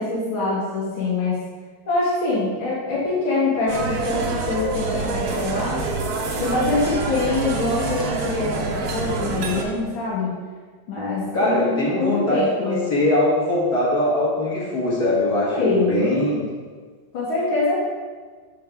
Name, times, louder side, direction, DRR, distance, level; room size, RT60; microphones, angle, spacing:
voice 1, 0.0-1.4 1.9-5.8 6.4-10.3 10.9-12.8 15.5-16.0 17.1-17.9, left 3 dB, 80° left, -7 dB, 2.2 m, -24 dB
sound 1, 3.7-9.6, right 3 dB, 60° right, 1.1 m, -26 dB
voice 2, 11.3-16.4, left 1 dB, 50° left, -9 dB, 2.2 m, -21 dB
6.8 x 5.2 x 3.6 m, 1.5 s
omnidirectional pair, 2.2 m